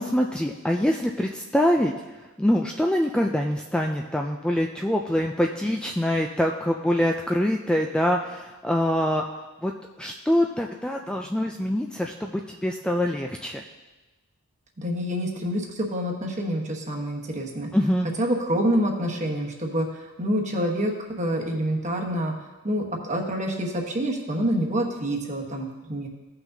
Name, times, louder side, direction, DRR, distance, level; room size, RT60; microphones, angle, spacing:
voice 1, 0.0-1.9 2.4-9.2 9.6-9.7 10.0-13.6 17.7-18.1, equal, 5° left, 1 dB, 0.3 m, -24 dB
voice 2, 14.8-17.7 18.2-22.3 22.6-26.1, equal, 35° right, 1 dB, 1.2 m, -27 dB
15.5 x 5.8 x 2.7 m, 1.1 s
head